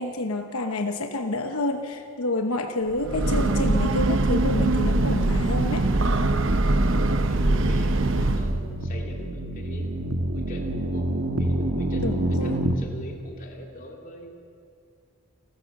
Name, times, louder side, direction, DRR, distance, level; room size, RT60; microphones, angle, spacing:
voice 1, 0.0-5.9 12.0-12.6, left 2 dB, 80° left, 6 dB, 1.0 m, -28 dB
Breathing / Train, 2.9-8.7, right 2 dB, 60° right, 0.9 m, -22 dB
sound 1, 6.7-12.8, right 1 dB, 90° right, 1.5 m, -30 dB
voice 2, 7.3-9.9 10.3-11.1 11.4-14.3, equal, 40° left, 1 dB, 2.7 m, -42 dB
29.5 x 14.0 x 6.6 m, 2.4 s
head